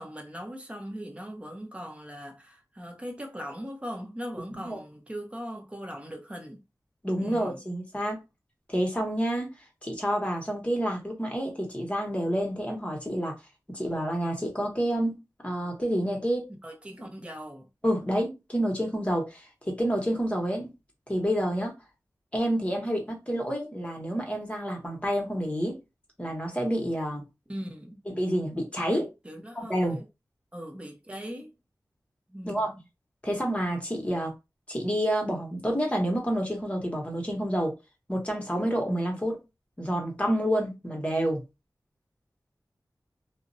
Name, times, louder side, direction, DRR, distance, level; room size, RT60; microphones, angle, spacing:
voice 1, 0.0-6.6 7.2-7.6 16.6-17.7 27.5-28.0 29.2-30.1 30.5-31.5 32.3-32.7, equal, 15° right, 0.7 m, -40 dB
voice 2, 7.0-8.2 8.7-9.5 9.8-13.3 13.7-15.2 15.4-16.4 17.8-20.7 21.1-21.7 22.3-25.8 26.2-27.2 28.1-29.1 29.5-30.0 32.4-32.7 33.2-34.3 34.7-37.7 38.1-39.4 39.8-41.4, equal, 20° left, 1.0 m, -28 dB
2.4 x 2.0 x 2.6 m
wide cardioid pair, 75°, 7 cm